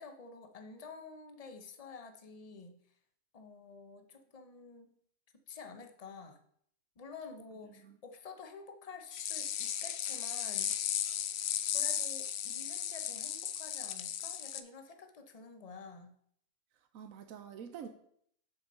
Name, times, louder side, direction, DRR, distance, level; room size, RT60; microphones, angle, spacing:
voice 1, 0.0-2.8 3.3-4.9 5.5-6.4 7.0-10.7 11.7-16.1, left 4 dB, 30° left, 7 dB, 0.9 m, -50 dB
voice 2, 7.6-8.0 16.9-17.9, right 8 dB, 85° right, 8 dB, 1.2 m, -47 dB
sound 1, 9.1-14.6, left 9 dB, 60° left, 0.8 m, -35 dB
6.9 x 6.6 x 5.4 m, 0.66 s
omnidirectional pair, 1.4 m